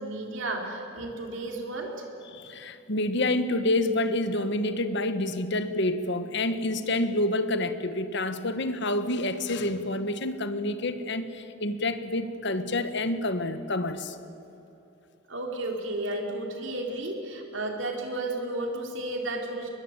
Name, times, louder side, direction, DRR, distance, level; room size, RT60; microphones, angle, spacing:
voice 1, 0.0-1.9 15.3-19.7, right 2 dB, 65° right, 2 dB, 4.2 m, -33 dB
voice 2, 2.3-14.1, left 1 dB, 60° left, 10 dB, 1.5 m, -28 dB
24.0 x 21.5 x 9.1 m, 2.9 s
head